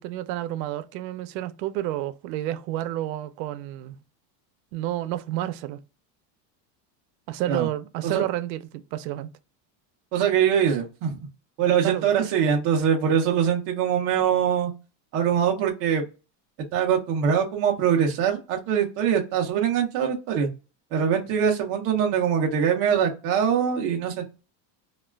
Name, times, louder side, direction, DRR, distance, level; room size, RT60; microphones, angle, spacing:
voice 1, 0.0-4.0 4.7-5.8 7.3-9.3 11.8-12.1, right 14 dB, 90° right, 0.6 m, -30 dB
voice 2, 10.1-11.2 11.6-14.7 15.1-16.1 16.7-20.5 20.9-24.2, right 8 dB, 30° right, 0.4 m, -23 dB
2.2 x 2.2 x 3.2 m
cardioid pair, 170°, 49 cm